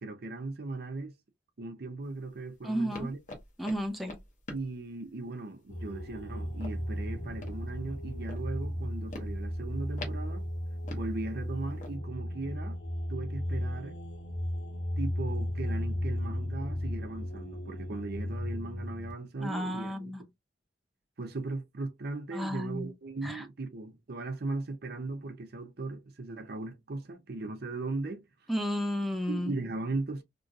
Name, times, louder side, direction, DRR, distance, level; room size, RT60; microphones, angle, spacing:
voice 1, 0.0-1.1 1.6-3.2 4.5-10.4 10.9-12.8 13.1-14.0 15.0-20.1 21.2-28.2 29.3-30.2, right 3 dB, 60° right, 0.6 m, -38 dB
sound 1, 2.1-12.0, left 2 dB, 45° left, 1.0 m, -48 dB
voice 2, 2.6-3.1 3.6-4.2 19.4-20.2 22.3-22.9 23.2-23.5 28.5-29.6, equal, ahead, 0.5 m, -32 dB
sound 2, 5.7-19.1, equal, 70° left, 1.0 m, -35 dB
3.0 x 2.7 x 2.3 m
head